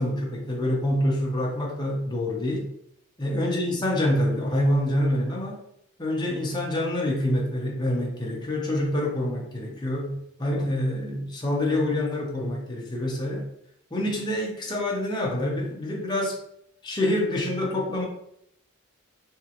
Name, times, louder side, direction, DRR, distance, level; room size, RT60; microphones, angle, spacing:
voice 1, 0.0-2.7 3.2-5.6 6.0-13.5 13.9-16.4 16.8-18.0, left 1 dB, 20° left, -2 dB, 0.8 m, -26 dB
3.6 x 3.0 x 2.9 m, 0.74 s
head